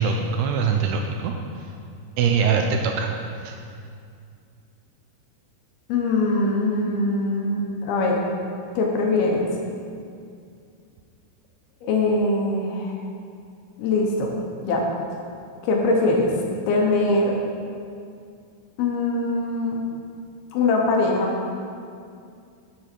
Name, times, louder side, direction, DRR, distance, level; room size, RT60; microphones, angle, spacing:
voice 1, 0.0-1.3 2.2-3.1 3.4-3.6, right 6 dB, 80° right, 3 dB, 2.4 m, -22 dB
voice 2, 5.9-8.2 8.7-9.5 11.8-12.9 13.8-14.4 14.6-14.9 15.6-16.3 16.7-17.3 18.8-19.8 20.5-21.3, left 2 dB, 70° left, -1 dB, 2.6 m, -22 dB
12.0 x 7.0 x 4.4 m, 2.4 s
omnidirectional pair, 4.9 m